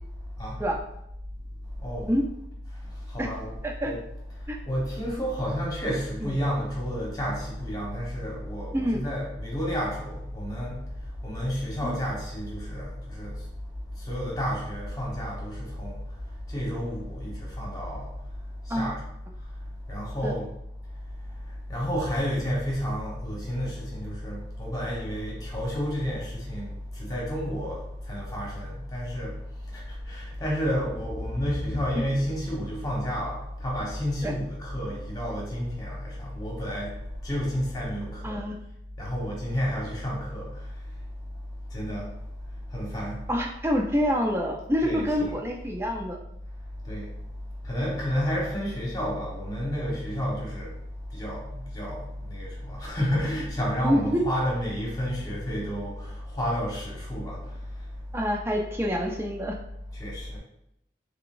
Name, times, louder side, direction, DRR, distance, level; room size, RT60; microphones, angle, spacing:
voice 1, 1.8-2.1 3.1-3.5 3.8-4.0 4.7-10.8 11.2-13.4 14.0-15.9 16.5-18.1 18.7-19.0 19.9-20.5 21.7-29.3 29.7-37.0 37.2-38.3 39.0-40.5 41.7-42.1 42.7-43.2 44.8-45.3 46.8-47.1 47.6-50.7 51.1-52.0 52.3-57.5 60.0-60.4, equal, 20° left, -4 dB, 1.0 m, -30 dB
voice 2, 38.2-38.6 43.3-46.2 53.8-54.2 58.1-59.5, equal, 15° right, 2 dB, 0.4 m, -26 dB
3.8 x 3.3 x 2.4 m, 0.82 s
head